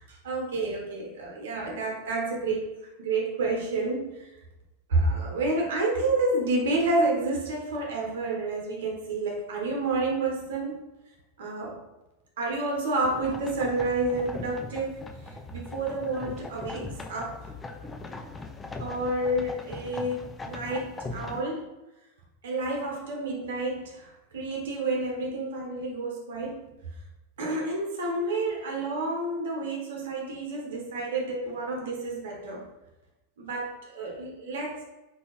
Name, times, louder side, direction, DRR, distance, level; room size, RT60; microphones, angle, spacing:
voice 1, 0.0-2.7 3.0-4.3 4.9-10.8 11.4-11.8 12.4-17.5 18.8-21.7 22.4-26.6 27.4-32.6 33.4-34.8, right 2 dB, 70° right, -1 dB, 0.8 m, -29 dB
sound 1, 13.0-21.4, left 3 dB, 20° left, 0.4 m, -40 dB
3.3 x 2.6 x 2.9 m, 1.0 s
hypercardioid pair, 95°, 0 cm